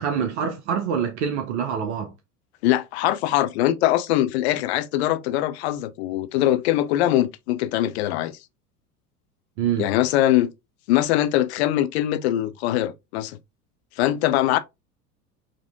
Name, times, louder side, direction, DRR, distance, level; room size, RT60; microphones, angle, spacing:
voice 1, 0.0-2.1 9.6-9.9, right 7 dB, 45° right, 0.7 m, -25 dB
voice 2, 2.6-8.4 9.8-10.5 10.9-13.4 14.0-14.6, left 14 dB, 45° left, 0.5 m, -22 dB
5.1 x 2.7 x 2.3 m
figure-of-eight pair, 80°, 48 cm